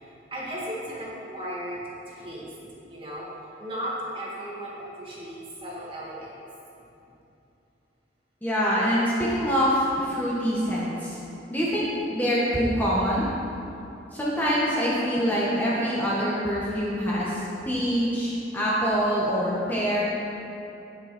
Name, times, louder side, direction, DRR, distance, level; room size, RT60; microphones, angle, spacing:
voice 1, 0.0-3.3 3.6-6.4, equal, 30° right, -6 dB, 2.5 m, -36 dB
voice 2, 8.4-11.2 11.5-13.3 14.1-20.0, equal, 10° left, -8 dB, 1.7 m, -25 dB
18.0 x 6.6 x 4.6 m, 2.8 s
head